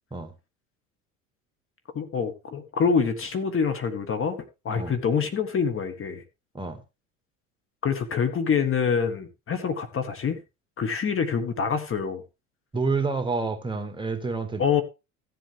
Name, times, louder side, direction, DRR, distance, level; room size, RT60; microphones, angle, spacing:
voice 1, 1.9-6.2 7.8-10.4 10.8-12.2 14.6-14.8, left 6 dB, 35° left, 1.6 m, -26 dB
voice 2, 12.7-14.6, right 4 dB, 10° right, 2.0 m, -28 dB
15.0 x 7.6 x 3.5 m
hypercardioid pair, 70°, 38 cm